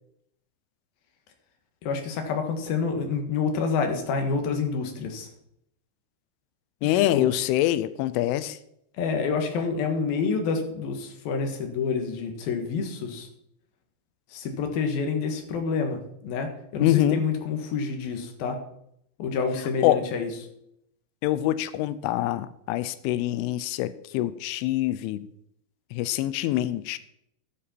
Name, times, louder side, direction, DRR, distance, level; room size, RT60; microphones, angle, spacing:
voice 1, 1.8-5.3 7.1-7.3 9.0-13.3 14.3-18.6 19.2-20.3, left 5 dB, 65° left, 4 dB, 2.8 m, -28 dB
voice 2, 6.8-8.6 16.8-17.2 19.8-20.0 21.2-25.3 25.9-27.0, left 14 dB, 90° left, 15 dB, 3.1 m, -25 dB
12.5 x 8.6 x 4.4 m, 0.75 s
omnidirectional pair, 5.5 m